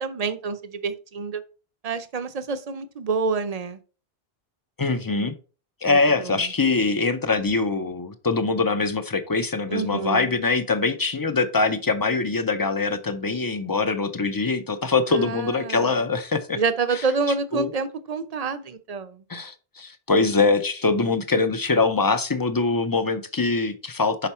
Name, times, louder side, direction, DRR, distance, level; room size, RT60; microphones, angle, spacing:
voice 1, 0.0-1.4 1.8-3.8 5.8-6.4 9.7-10.3 15.1-16.1 16.6-19.2, right 4 dB, 45° right, 0.6 m, -28 dB
voice 2, 4.8-5.3 5.8-16.6 16.9-17.1 17.5-17.7 19.3-24.3, left 3 dB, 30° left, 0.4 m, -23 dB
5.8 x 4.5 x 4.2 m
omnidirectional pair, 1.0 m